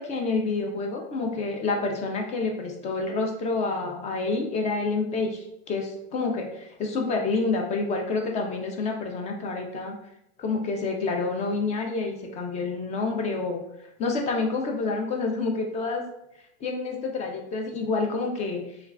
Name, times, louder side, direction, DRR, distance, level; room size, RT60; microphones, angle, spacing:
voice 1, 0.0-10.0 10.4-13.6 14.0-16.0 16.6-18.6, left 3 dB, 20° left, 1 dB, 0.3 m, -28 dB
2.3 x 2.3 x 3.2 m, 0.80 s
supercardioid pair, 125°, 35 cm